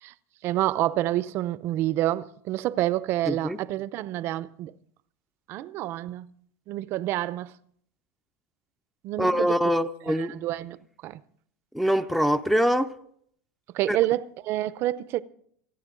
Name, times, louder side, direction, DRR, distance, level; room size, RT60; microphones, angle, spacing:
voice 1, 0.4-4.7 5.5-6.3 6.7-7.5 9.0-9.5 10.1-10.8 11.0-11.2 13.7-15.2, right 14 dB, 45° right, 0.6 m, -28 dB
voice 2, 3.3-3.6 9.2-10.3 11.7-12.9 13.9-14.0, equal, ahead, 0.6 m, -24 dB
28.5 x 9.8 x 3.8 m
supercardioid pair, 145°, 6 cm